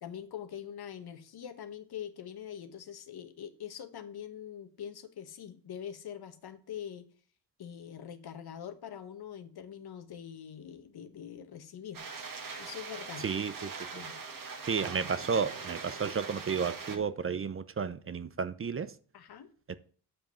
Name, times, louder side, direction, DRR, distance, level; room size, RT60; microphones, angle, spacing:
voice 1, 0.0-7.0 7.6-12.0 12.6-13.2 13.9-14.2 19.1-19.5, left 9 dB, 70° left, 1.2 m, -44 dB
sound 1, 11.9-17.0, right 5 dB, 55° right, 1.7 m, -42 dB
voice 2, 13.2-14.0 14.6-18.9 19.7-19.8, right 6 dB, 35° right, 0.6 m, -32 dB
sound 2, 14.8-16.1 16.9-17.0, right 9 dB, 85° right, 0.9 m, -49 dB
7.7 x 5.2 x 6.4 m
cardioid pair, 85°, 40 cm